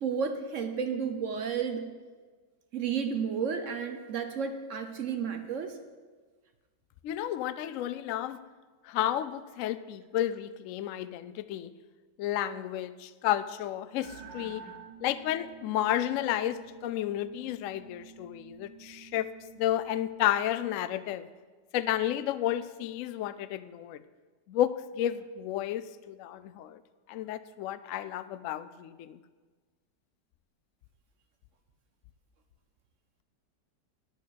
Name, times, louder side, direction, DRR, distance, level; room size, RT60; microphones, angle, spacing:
voice 1, 0.0-1.9 2.7-5.8, right 6 dB, 55° right, 7 dB, 0.9 m, -32 dB
voice 2, 7.0-8.4 8.8-11.7 12.2-14.6 15.0-19.3 19.6-21.3 21.7-24.0 24.5-26.8 27.1-29.2, left 12 dB, 80° left, 13 dB, 0.7 m, -32 dB
sound 1, 14.0-20.4, right 5 dB, 90° right, 1.5 m, -50 dB
9.2 x 6.4 x 8.5 m, 1.4 s
omnidirectional pair, 1.9 m